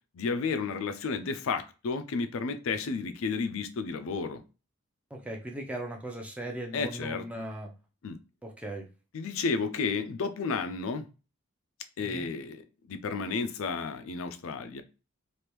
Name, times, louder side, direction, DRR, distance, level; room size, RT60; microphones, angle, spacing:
voice 1, 0.1-4.4 6.7-7.3 8.0-8.2 9.1-11.1 12.0-12.6 12.9-14.8, left 4 dB, 70° left, 0.4 m, -32 dB
voice 2, 5.1-7.7 8.4-8.9 12.0-12.3, right 1 dB, 5° right, 0.5 m, -38 dB
3.3 x 2.5 x 2.9 m
head